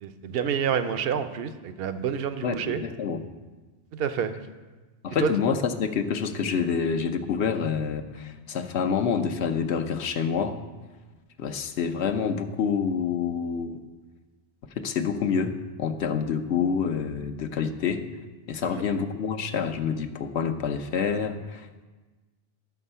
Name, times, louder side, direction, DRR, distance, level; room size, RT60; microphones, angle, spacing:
voice 1, 0.0-2.8 3.9-4.3 5.2-5.3, right 8 dB, 60° right, 10 dB, 0.8 m, -28 dB
voice 2, 2.4-3.2 5.0-10.6 11.4-13.8 14.8-18.1 18.5-21.9, left 6 dB, 70° left, 6 dB, 1.0 m, -27 dB
12.0 x 6.9 x 5.5 m, 1.3 s
omnidirectional pair, 1.2 m